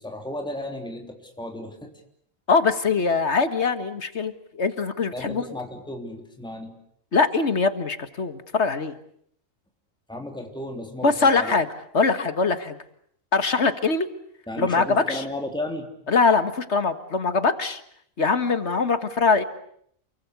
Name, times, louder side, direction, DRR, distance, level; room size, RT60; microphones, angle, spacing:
voice 1, 0.0-1.9 5.1-6.8 10.1-11.6 14.5-15.9, left 1 dB, 5° left, 3 dB, 3.4 m, -34 dB
voice 2, 2.5-5.4 7.1-8.9 11.0-11.7 11.9-12.8 13.3-14.1 14.6-15.2 16.1-17.8 18.2-19.4, left 4 dB, 55° left, 11 dB, 2.0 m, -22 dB
29.0 x 23.0 x 8.3 m, 0.67 s
omnidirectional pair, 1.4 m